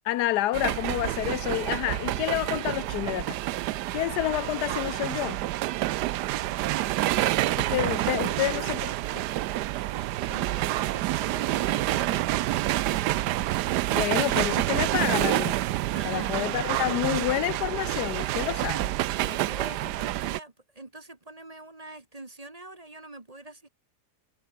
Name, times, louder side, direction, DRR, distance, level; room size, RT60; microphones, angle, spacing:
voice 1, 0.1-3.4 3.9-5.4 7.6-8.9 13.9-15.6 16.0-18.9, left 14 dB, 80° left, 1.2 m, -29 dB
sound 1, 0.5-20.4, right 15 dB, 85° right, 1.2 m, -28 dB
voice 2, 8.2-8.6 9.9-12.2 15.9-17.0 19.1-23.7, right 2 dB, 25° right, 1.7 m, -45 dB
omnidirectional pair, 1.7 m